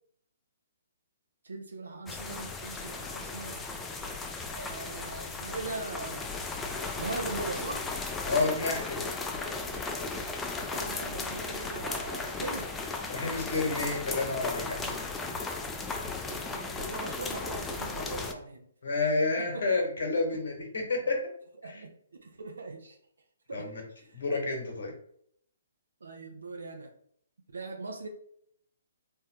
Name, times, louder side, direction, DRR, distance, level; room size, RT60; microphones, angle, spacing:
voice 1, 1.4-3.6 4.5-6.2 7.0-7.9 10.7-12.7 14.7-15.3 15.8-18.7 19.4-19.7 20.3-20.4 21.6-23.0 23.5-23.7 24.0-24.2 26.0-26.9 27.5-28.1, right 3 dB, 80° right, 3 dB, 0.5 m, -40 dB
sound 1, 2.1-18.3, left 3 dB, 10° left, 0.3 m, -36 dB
voice 2, 8.3-9.0 13.1-14.9 18.8-21.2 21.7-21.8 23.5-23.8 24.1-24.9, left 3 dB, 65° left, 1 dB, 0.9 m, -29 dB
3.5 x 2.1 x 2.9 m, 0.67 s
hypercardioid pair, 140°, 0 cm